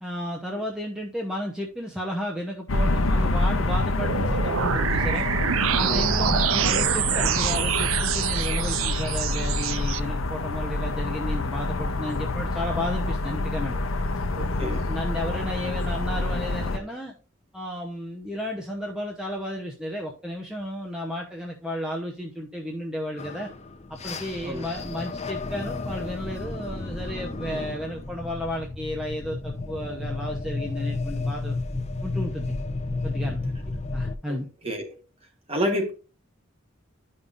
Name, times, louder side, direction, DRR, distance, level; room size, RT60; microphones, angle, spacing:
voice 1, 0.0-5.3 5.7-13.8 14.6-17.1 17.5-23.5 23.9-31.6 32.0-32.5 33.0-33.4 33.9-34.5, equal, 5° right, 0.9 m, -33 dB
sound 1, 2.7-16.8, left 2 dB, 80° left, 0.8 m, -27 dB
sound 2, 4.0-10.0, right 11 dB, 75° right, 0.4 m, -26 dB
voice 2, 14.3-14.8 24.4-24.7 34.3-34.4 34.6-35.0 35.5-35.9, equal, 30° right, 1.5 m, -29 dB
sound 3, 23.2-34.1, left 3 dB, 30° left, 0.8 m, -32 dB
11.5 x 5.4 x 2.5 m
head